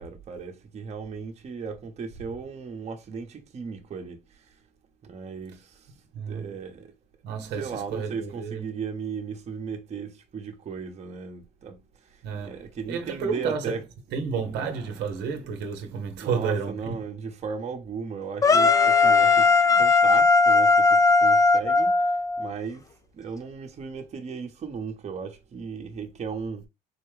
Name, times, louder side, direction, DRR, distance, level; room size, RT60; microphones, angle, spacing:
voice 1, 0.0-4.5 5.0-5.9 6.3-6.9 7.6-13.8 16.2-26.7, right 5 dB, 40° right, 0.9 m, -36 dB
voice 2, 6.1-6.5 7.2-8.7 12.2-12.6 12.9-13.8 14.1-17.0, right 6 dB, 85° right, 0.8 m, -31 dB
sound 1, 18.4-22.5, left 4 dB, 20° left, 0.4 m, -18 dB
4.2 x 2.2 x 3.1 m
cardioid pair, 110°, 17 cm